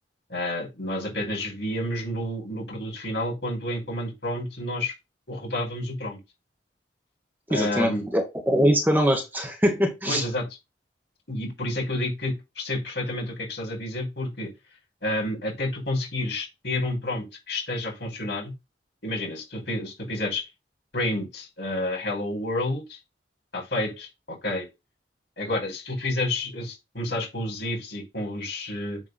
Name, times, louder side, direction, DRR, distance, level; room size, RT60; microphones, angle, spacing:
voice 1, 0.3-4.9 5.3-6.2 7.5-8.1 10.1-10.4 11.3-14.5 15.0-18.5 19.0-20.4 20.9-23.0 23.5-24.7 25.4-29.0, left 1 dB, 75° left, 5.1 m, -30 dB
voice 2, 7.5-10.2, equal, 10° right, 1.6 m, -23 dB
9.1 x 3.7 x 4.1 m
head